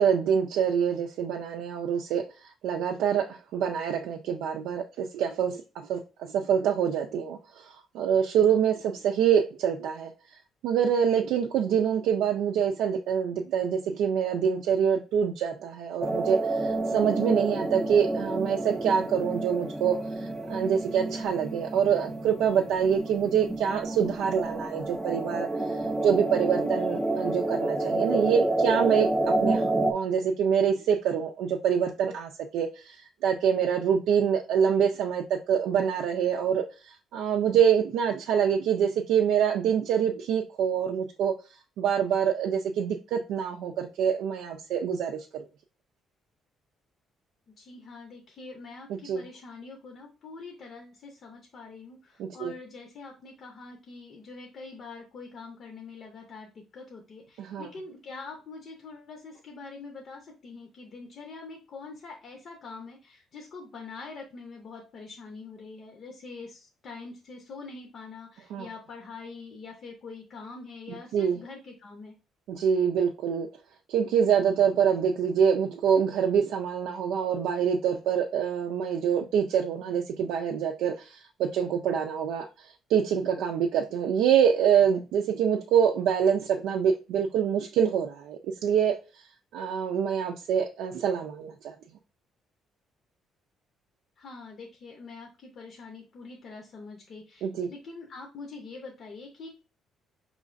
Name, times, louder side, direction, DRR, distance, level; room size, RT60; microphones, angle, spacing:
voice 1, 0.0-2.2 2.6-5.6 5.9-10.1 10.6-25.5 26.0-29.6 29.9-33.0 33.2-36.6 37.1-41.3 41.8-45.4 49.0-49.2 52.2-52.5 57.4-57.7 68.5-68.7 71.1-71.4 72.5-73.5 73.9-82.5 82.9-88.9 89.5-91.7 97.4-97.7, right 8 dB, 85° right, 0.4 m, -25 dB
sound 1, 16.0-29.9, right 2 dB, 5° right, 0.4 m, -29 dB
voice 2, 47.6-72.2 94.2-99.5, left 4 dB, 40° left, 0.7 m, -44 dB
5.0 x 3.1 x 2.5 m
cardioid pair, 175°, 0 cm